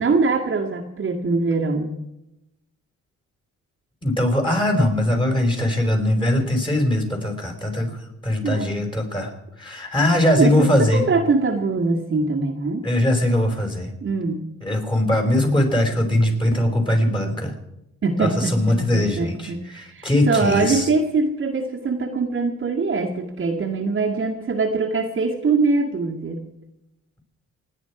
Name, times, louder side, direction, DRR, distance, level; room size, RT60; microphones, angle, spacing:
voice 1, 0.0-1.9 8.4-8.8 10.3-12.8 14.0-14.4 18.0-26.4, right 3 dB, 40° right, 0 dB, 1.8 m, -23 dB
voice 2, 4.0-9.3 9.6-11.0 12.8-13.9 14.6-17.5 18.2-20.9, left 1 dB, 15° left, 3 dB, 4.9 m, -21 dB
28.0 x 10.0 x 4.8 m, 0.88 s
cardioid pair, 90°, 30 cm